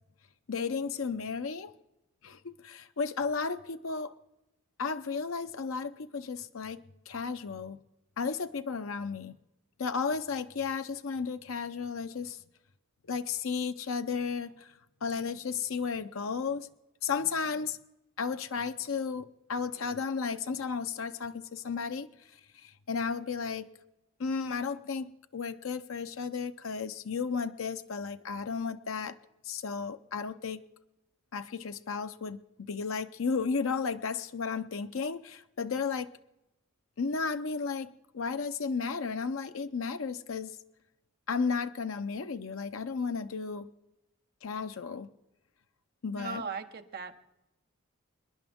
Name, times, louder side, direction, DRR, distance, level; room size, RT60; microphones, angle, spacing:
voice 1, 0.5-1.7 2.2-4.1 4.8-7.8 8.2-9.3 9.8-12.4 13.1-14.7 15.0-16.7 17.0-17.8 18.2-22.1 22.5-23.7 24.2-29.2 29.4-30.6 31.3-36.1 37.0-40.5 41.3-43.7 44.4-45.1 46.0-46.4, left 5 dB, 70° left, 0.6 m, -34 dB
voice 2, 46.1-47.2, right 4 dB, 50° right, 1.2 m, -38 dB
26.0 x 10.5 x 3.6 m
head